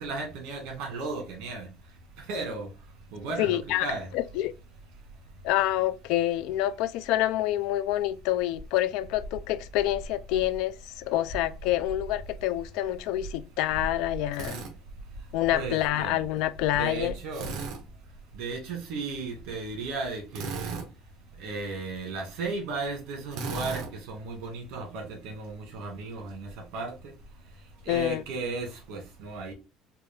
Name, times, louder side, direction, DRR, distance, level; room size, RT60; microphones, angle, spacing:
voice 1, 0.0-1.7 2.3-2.7 3.1-4.1 15.5-16.2 16.7-17.6 18.4-20.8 21.4-26.9 27.8-29.5, right 3 dB, 70° right, 1.7 m, -35 dB
voice 2, 3.4-4.5 5.4-14.6 15.3-17.2 27.9-28.2, left 14 dB, 70° left, 0.3 m, -27 dB
Drill, 14.3-14.7 17.3-17.8 20.3-20.9 23.3-23.9, right 4 dB, 55° right, 1.0 m, -35 dB
4.4 x 2.5 x 3.2 m
cardioid pair, 175°, 0 cm